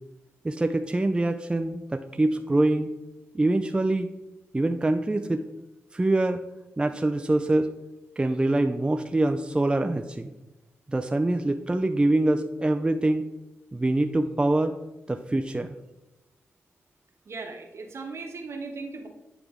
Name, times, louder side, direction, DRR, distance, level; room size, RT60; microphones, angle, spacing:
voice 1, 0.4-2.9 3.3-4.1 4.5-5.4 5.9-6.4 6.8-7.7 8.2-10.3 10.9-13.2 13.7-14.8 15.1-15.7, right 2 dB, 20° right, 6 dB, 0.4 m, -24 dB
voice 2, 17.3-19.1, right 3 dB, 60° right, 3 dB, 1.1 m, -37 dB
9.0 x 3.4 x 3.7 m, 1.0 s
cardioid pair, 60°, 5 cm